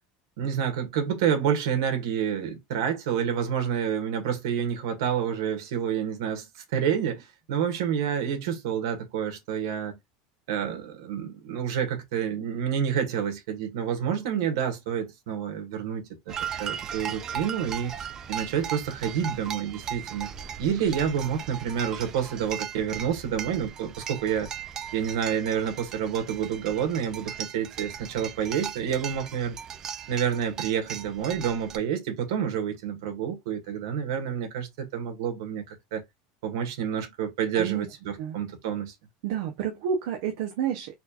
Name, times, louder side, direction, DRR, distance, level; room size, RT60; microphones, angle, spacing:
voice 1, 0.4-10.0 10.5-17.9 18.3-20.3 20.6-24.5 24.9-29.6 30.1-36.0 36.4-38.9, right 8 dB, 85° right, 1.3 m, -28 dB
sound 1, 16.3-31.8, right 8 dB, 25° right, 0.3 m, -37 dB
voice 2, 37.5-37.9 38.2-38.4 39.2-40.9, right 8 dB, 65° right, 0.6 m, -29 dB
4.2 x 2.4 x 2.8 m
supercardioid pair, 170°, 2 cm